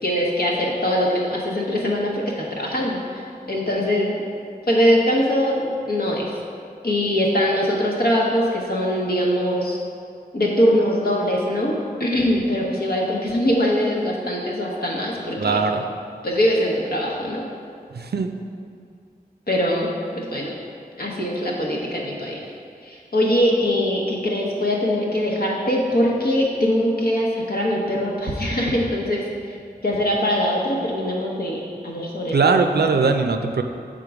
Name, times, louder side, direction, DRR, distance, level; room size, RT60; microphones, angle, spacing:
voice 1, 0.0-4.1 4.7-6.3 6.8-9.8 10.3-15.6 16.2-17.4 19.5-20.5 21.0-22.4 22.8-29.6 29.8-32.4, equal, 65° left, -3 dB, 1.1 m, -22 dB
voice 2, 15.4-15.8 17.9-18.3 32.3-33.6, right 4 dB, 70° right, 6 dB, 0.4 m, -20 dB
6.8 x 3.7 x 4.8 m, 2.3 s
wide cardioid pair, 65°, 17 cm